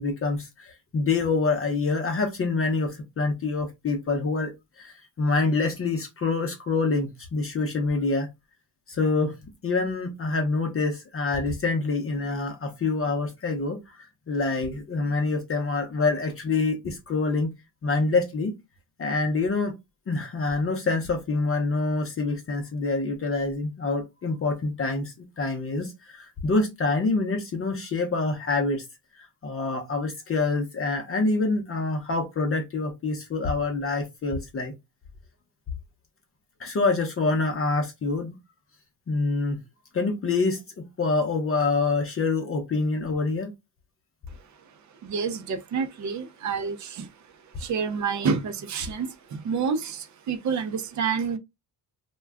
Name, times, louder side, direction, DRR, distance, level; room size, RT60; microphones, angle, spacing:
voice 1, 0.0-4.5 4.8-8.3 8.9-9.3 9.6-17.5 17.8-18.5 19.0-19.8 20.1-28.8 29.2-34.7 36.6-38.4 39.1-39.6 39.9-43.5, left 3 dB, 35° left, 0.6 m, -26 dB
voice 2, 44.3-51.4, right 6 dB, 45° right, 0.5 m, -29 dB
2.3 x 2.2 x 3.4 m
cardioid pair, 100°, 40 cm